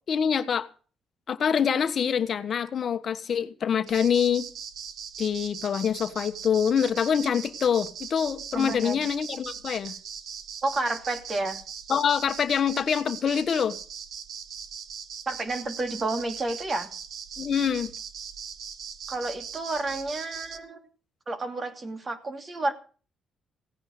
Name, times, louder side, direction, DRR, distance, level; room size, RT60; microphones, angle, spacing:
voice 1, 0.1-0.7 1.3-4.5 5.2-9.9 11.9-13.8 17.4-17.9, left 7 dB, 55° left, 1.2 m, -25 dB
cicadas hi-pass filtered, 3.9-20.6, right 7 dB, 70° right, 1.6 m, -40 dB
voice 2, 8.5-9.0 10.6-11.6 15.3-16.9 19.1-20.8 21.3-22.7, right 2 dB, 35° right, 2.9 m, -30 dB
17.0 x 9.8 x 6.5 m
cardioid pair, 90°, 0 cm